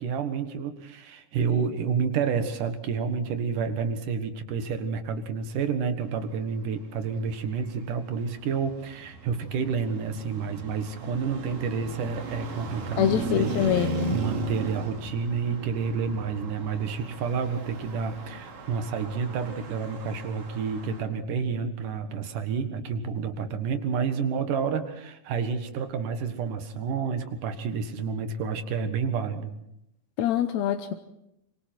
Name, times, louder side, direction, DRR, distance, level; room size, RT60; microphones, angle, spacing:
voice 1, 0.0-29.5, right 6 dB, 75° right, 8 dB, 3.0 m, -29 dB
Traffic noise roadway noise, 7.3-21.0, right 3 dB, 90° right, 4.5 m, -37 dB
voice 2, 13.0-14.2 30.2-30.9, left 10 dB, 70° left, 7 dB, 1.9 m, -25 dB
25.0 x 24.0 x 4.5 m, 0.82 s
omnidirectional pair, 3.9 m